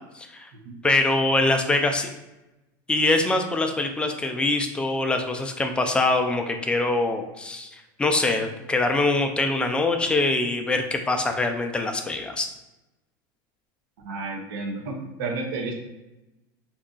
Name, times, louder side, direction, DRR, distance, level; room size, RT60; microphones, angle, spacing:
voice 1, 0.1-0.5 0.8-2.1 2.9-7.7 8.0-12.5, left 2 dB, 10° left, 5 dB, 0.3 m, -23 dB
voice 2, 14.0-15.7, right 3 dB, 80° right, -1 dB, 0.8 m, -31 dB
2.7 x 2.3 x 3.8 m, 0.99 s
supercardioid pair, 135°, 11 cm